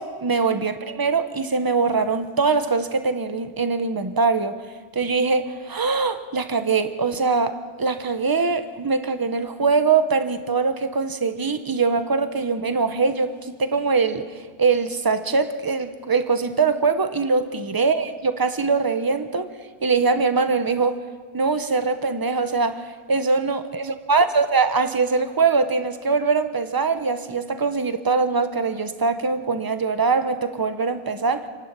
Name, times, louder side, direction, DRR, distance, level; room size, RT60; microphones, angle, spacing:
voice 1, 0.0-4.6 4.9-19.5 19.8-21.0 21.3-23.6 24.1-31.5, right 4 dB, 20° right, 10 dB, 0.8 m, -22 dB
28.0 x 11.5 x 8.3 m, 1.5 s
omnidirectional pair, 1.6 m